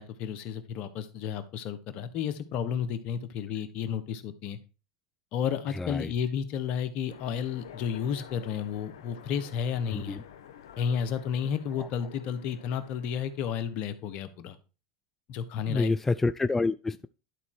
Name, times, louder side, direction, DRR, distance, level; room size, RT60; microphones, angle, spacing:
voice 1, 0.0-4.6 5.3-10.2 10.8-14.6 15.3-15.9, left 8 dB, 55° left, 11 dB, 1.3 m, -32 dB
voice 2, 5.7-6.1 9.9-10.2 11.8-11.9 15.7-17.1, left 3 dB, 10° left, 13 dB, 0.3 m, -28 dB
Train, 7.1-14.0, left 9 dB, 80° left, 1.0 m, -49 dB
11.5 x 4.2 x 4.7 m, 0.33 s
hypercardioid pair, 100°, 2 cm